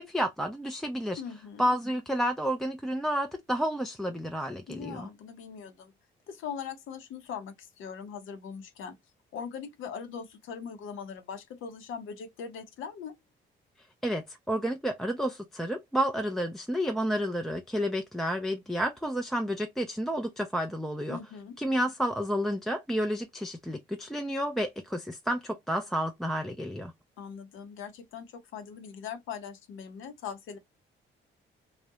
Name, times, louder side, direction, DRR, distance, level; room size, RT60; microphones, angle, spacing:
voice 1, 0.0-1.2 1.6-5.1 14.0-21.2 21.6-26.9, equal, ahead, 0.4 m, -30 dB
voice 2, 1.2-1.7 4.7-5.9 6.3-9.0 9.3-13.2 21.1-21.6 27.2-30.6, left 7 dB, 85° left, 0.7 m, -41 dB
2.3 x 2.0 x 2.7 m
cardioid pair, 90°, 20 cm